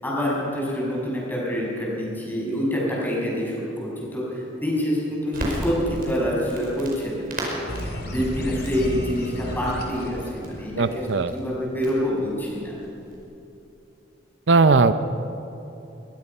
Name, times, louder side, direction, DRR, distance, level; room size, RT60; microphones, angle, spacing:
voice 1, 0.0-11.0 11.3-12.7, equal, 10° left, -5 dB, 6.8 m, -27 dB
Crackle, 5.3-13.2, right 1 dB, 50° right, 5.1 m, -37 dB
sound 1, 7.7-11.0, equal, 60° left, 3.4 m, -32 dB
voice 2, 10.8-11.3 14.5-14.9, right 4 dB, 70° right, 11 dB, 0.7 m, -18 dB
22.0 x 21.0 x 5.6 m, 2.9 s
head